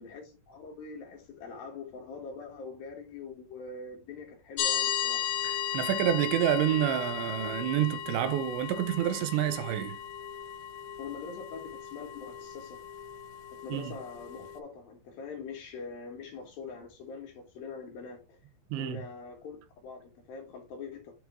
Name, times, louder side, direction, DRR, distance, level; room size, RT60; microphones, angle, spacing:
voice 1, 0.0-5.3 11.0-12.8 13.6-18.4 18.8-21.1, left 5 dB, 65° left, 2.9 m, -43 dB
sound 1, 4.6-14.6, left 10 dB, 80° left, 2.2 m, -36 dB
voice 2, 5.4-10.0 13.7-13.9 18.7-19.0, right 11 dB, 85° right, 2.9 m, -28 dB
8.0 x 3.5 x 4.3 m
omnidirectional pair, 5.1 m